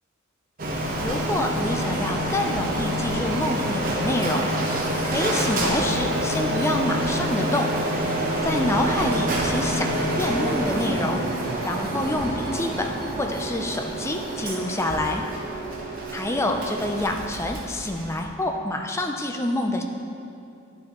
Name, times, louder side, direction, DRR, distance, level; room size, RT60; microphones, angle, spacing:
Printer, 0.6-18.3, right 1 dB, 45° right, 0.9 m, -27 dB
voice 1, 1.0-4.5 5.0-7.7 8.4-11.2 11.6-15.3 16.1-19.8, left 1 dB, 15° left, 3 dB, 0.4 m, -27 dB
10.5 x 6.4 x 3.0 m, 2.6 s
head